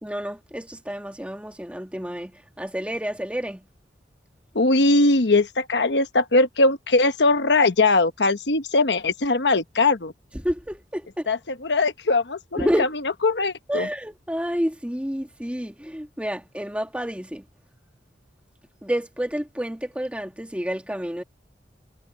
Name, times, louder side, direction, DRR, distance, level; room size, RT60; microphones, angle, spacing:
voice 1, 0.0-3.6 10.3-11.3 12.6-13.0 13.7-17.4 18.8-21.2, equal, 5° right, 1.6 m, -29 dB
voice 2, 4.5-10.1 11.3-11.4 11.7-12.7 13.2-13.9, left 3 dB, 80° left, 1.1 m, -20 dB
head